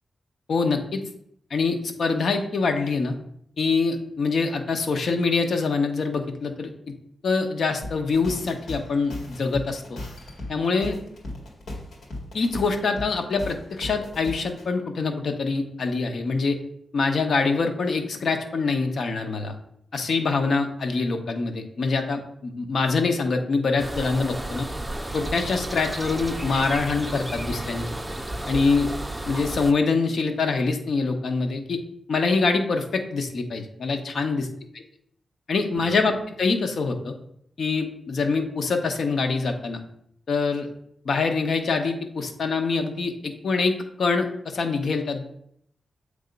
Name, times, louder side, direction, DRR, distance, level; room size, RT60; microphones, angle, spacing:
voice 1, 0.5-1.0 1.5-3.2 3.6-6.7 7.2-10.0 10.5-11.0 12.3-16.6 16.9-19.6 19.9-24.7 25.1-27.9 28.5-28.9 29.3-31.8 32.1-34.4 35.5-37.1 37.6-39.8 40.3-40.7 41.0-45.4, left 4 dB, 70° left, 5 dB, 0.9 m, -25 dB
sound 1, 7.8-14.6, left 1 dB, 85° left, 2.0 m, -37 dB
sound 2, 23.8-29.7, right 1 dB, 10° right, 0.5 m, -32 dB
7.7 x 3.5 x 5.2 m, 0.69 s
wide cardioid pair, 115°, 0 cm